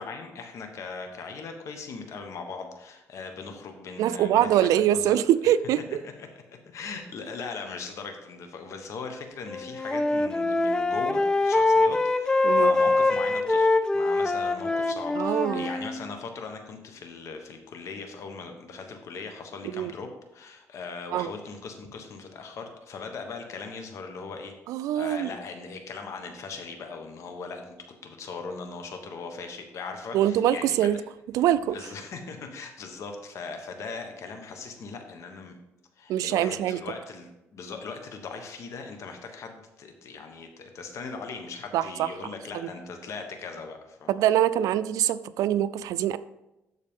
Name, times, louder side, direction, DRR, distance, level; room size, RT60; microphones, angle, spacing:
voice 1, 0.0-5.2 5.4-5.5 6.0-24.5 24.9-30.8 31.6-35.5 36.0-44.4, left 4 dB, 60° left, 5 dB, 1.1 m, -39 dB
voice 2, 4.0-5.8 12.4-12.7 15.2-15.7 19.7-19.9 21.1-21.3 24.7-25.3 30.1-31.0 31.3-31.8 36.1-36.8 41.7-42.1 42.5-42.7 44.1-46.2, right 11 dB, 85° right, 15 dB, 0.4 m, -24 dB
Wind instrument woodwind instrument, 9.5-15.9, left 2 dB, 10° left, 0.3 m, -24 dB
12.0 x 4.1 x 3.6 m, 0.94 s
cardioid pair, 120°, 6 cm